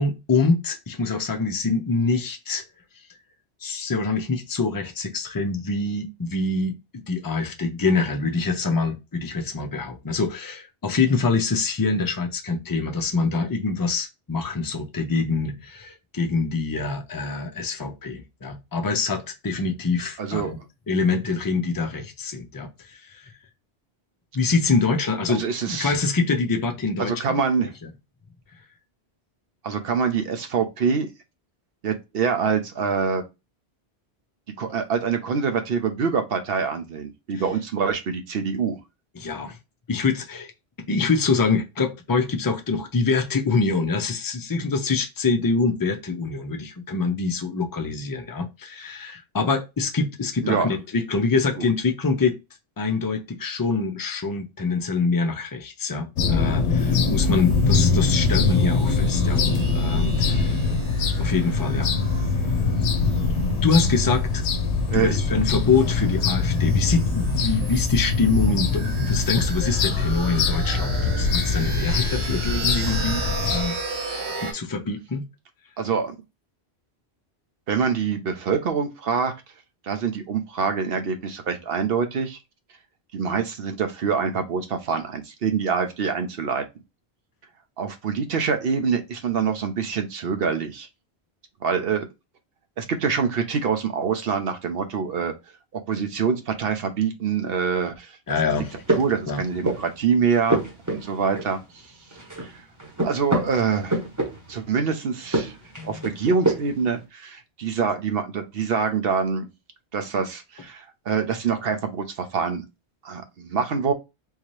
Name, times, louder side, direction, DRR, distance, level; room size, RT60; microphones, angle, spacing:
voice 1, 0.0-2.6 3.6-20.6 20.9-23.3 24.3-27.4 39.2-39.6 39.9-40.5 40.9-52.3 52.8-60.7 61.2-61.9 63.6-64.4 64.9-73.2 73.5-73.8 74.4-75.2 98.3-98.7 99.3-99.4 105.8-106.1, left 4 dB, 30° left, 0.4 m, -25 dB
voice 2, 20.2-20.5 25.3-26.0 27.0-27.7 29.6-31.1 31.8-33.2 34.6-38.8 50.4-50.7 51.6-51.7 64.9-65.2 75.8-76.2 77.7-79.3 79.8-82.4 83.1-86.6 87.8-90.9 91.6-92.1 92.8-95.3 95.7-98.4 98.9-101.8 102.4-102.6 103.0-104.0 104.5-105.6 105.8-109.5 109.9-112.6 113.0-113.9, right 6 dB, 65° right, 0.9 m, -25 dB
sound 1, 56.2-73.6, left 4 dB, 90° left, 0.9 m, -23 dB
sound 2, 56.8-74.5, right 3 dB, 85° right, 1.3 m, -36 dB
sound 3, 98.5-100.0 100.3-101.8 102.1-104.7 105.2-106.9, right 2 dB, 20° right, 0.9 m, -27 dB
3.7 x 2.7 x 3.1 m
omnidirectional pair, 1.1 m